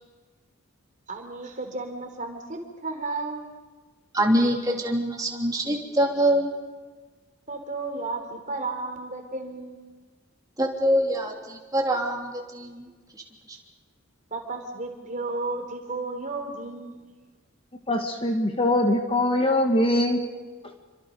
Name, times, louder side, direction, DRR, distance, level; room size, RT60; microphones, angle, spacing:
voice 1, 1.1-3.5 7.5-9.9 14.3-17.1, right 3 dB, 35° right, 4 dB, 3.8 m, -33 dB
voice 2, 4.1-6.5 10.6-12.8, right 1 dB, 15° right, 0 dB, 3.3 m, -24 dB
voice 3, 17.9-20.2, left 1 dB, 25° left, 4 dB, 1.7 m, -22 dB
28.5 x 25.0 x 5.4 m, 1.4 s
head